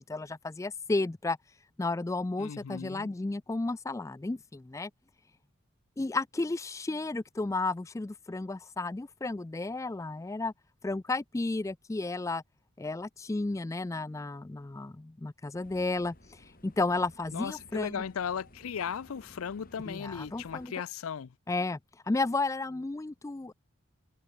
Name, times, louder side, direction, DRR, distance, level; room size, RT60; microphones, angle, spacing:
voice 1, 0.0-1.4 1.8-4.9 6.0-10.5 10.8-12.4 12.8-18.0 19.9-20.7 21.5-21.8 22.1-23.5, left 3 dB, 15° left, 0.3 m, -33 dB
voice 2, 2.4-3.1 17.3-21.3, left 7 dB, 75° left, 0.5 m, -36 dB
sound 1, 15.6-20.7, left 1 dB, 40° left, 4.4 m, -56 dB
head